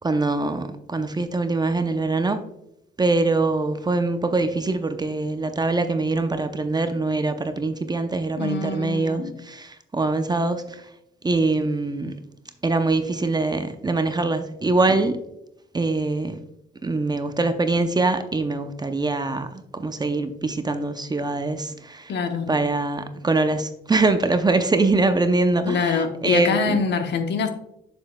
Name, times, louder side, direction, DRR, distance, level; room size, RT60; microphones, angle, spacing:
voice 1, 0.0-2.4 3.0-10.8 11.2-12.1 12.6-15.2 15.7-16.4 16.8-22.1 22.5-26.8, right 3 dB, 20° right, 0.6 m, -23 dB
voice 2, 8.4-9.4 22.1-22.5 25.7-27.5, left 5 dB, 60° left, 0.9 m, -24 dB
7.1 x 7.0 x 2.2 m
cardioid pair, 90°, 20 cm